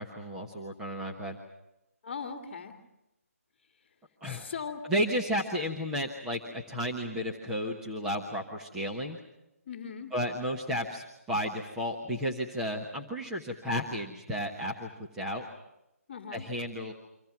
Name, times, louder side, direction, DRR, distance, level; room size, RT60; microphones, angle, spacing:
voice 1, 0.0-1.4 4.2-4.5 4.9-9.2 10.1-15.5 16.3-16.9, equal, 5° right, -1 dB, 1.1 m, -33 dB
voice 2, 2.0-2.7 4.2-4.8 9.7-10.1 16.1-16.5, left 6 dB, 20° left, -4 dB, 2.0 m, -39 dB
28.0 x 26.0 x 6.0 m, 0.91 s
hypercardioid pair, 175°, 8 cm